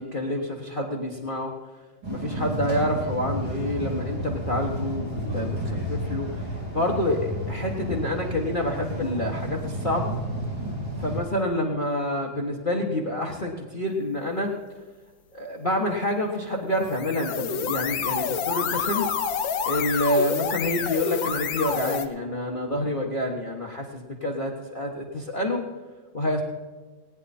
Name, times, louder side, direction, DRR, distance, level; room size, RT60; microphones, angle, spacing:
voice 1, 0.0-1.5 2.1-6.5 6.7-10.1 11.0-14.5 15.3-19.1 19.7-25.6 26.1-26.4, left 1 dB, 30° left, -2 dB, 1.3 m, -27 dB
sound 1, 2.0-11.2, equal, 90° right, 4.7 m, -31 dB
sound 2, 16.8-22.1, left 7 dB, 75° left, 1.6 m, -28 dB
19.0 x 9.8 x 4.3 m, 1.4 s
omnidirectional pair, 2.2 m